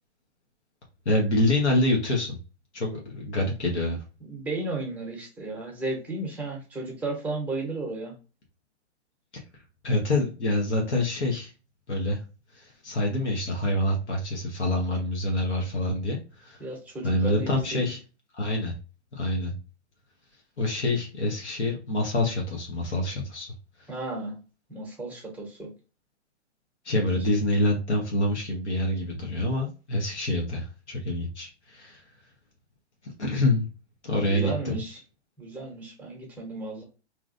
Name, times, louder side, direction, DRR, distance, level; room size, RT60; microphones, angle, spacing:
voice 1, 1.0-2.3 2.7-4.0 9.3-9.4 9.8-11.5 11.9-12.2 12.5-16.6 17.0-18.0 18.4-18.7 19.1-19.5 20.6-23.5 26.8-32.0 33.2-33.7 34.0-34.8, left 1 dB, 80° left, -1 dB, 1.2 m, -26 dB
voice 2, 4.2-8.2 16.6-17.8 23.9-24.4 24.7-25.7 34.2-35.0 35.4-36.8, right 2 dB, 5° right, -1 dB, 0.8 m, -34 dB
3.0 x 2.5 x 2.6 m, 0.32 s
figure-of-eight pair, 125°, 34 cm